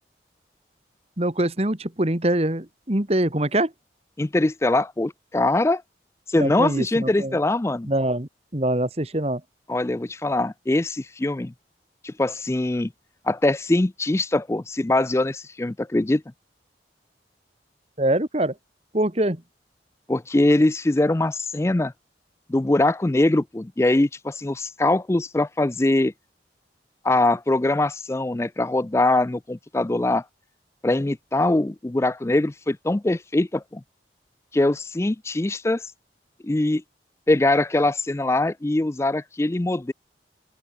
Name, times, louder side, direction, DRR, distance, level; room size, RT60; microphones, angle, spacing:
voice 1, 1.2-3.7 6.4-7.4 7.9-9.4 18.0-18.5 18.9-19.4, right 1 dB, 35° right, 2.0 m, -24 dB
voice 2, 4.2-5.8 6.3-7.9 9.7-11.5 12.0-12.9 13.3-16.2 20.1-21.9 22.5-26.1 27.0-30.2 30.8-33.8 34.5-35.8 36.4-36.8 37.3-39.9, left 2 dB, 15° left, 0.4 m, -22 dB
open air
head